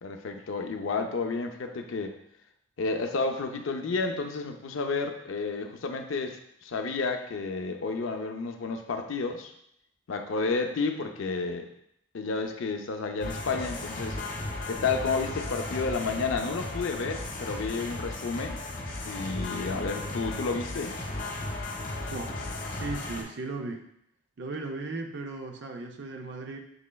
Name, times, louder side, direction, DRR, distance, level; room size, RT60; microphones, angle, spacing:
voice 1, 0.0-2.1 2.8-9.5 10.1-11.7 12.1-14.2 14.7-18.6 19.1-21.0, left 4 dB, 70° left, 5 dB, 0.5 m, -31 dB
sound 1, 13.2-23.2, left 2 dB, 45° left, 1.0 m, -35 dB
voice 2, 22.1-23.9 24.4-26.6, right 3 dB, 55° right, 4 dB, 0.5 m, -37 dB
6.2 x 3.1 x 2.2 m, 0.75 s
head